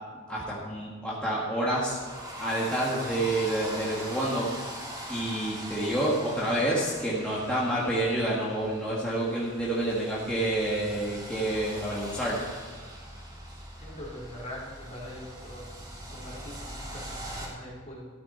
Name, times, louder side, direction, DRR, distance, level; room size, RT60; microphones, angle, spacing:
voice 1, 0.3-2.0 2.4-4.8 5.1-12.4, right 1 dB, 5° left, -7 dB, 1.9 m, -28 dB
sound 1, 1.7-17.5, right 1 dB, 20° right, 2.8 m, -42 dB
voice 2, 13.8-15.7 16.1-18.1, left 1 dB, 35° left, -5 dB, 3.7 m, -42 dB
13.0 x 13.0 x 4.3 m, 1.5 s
head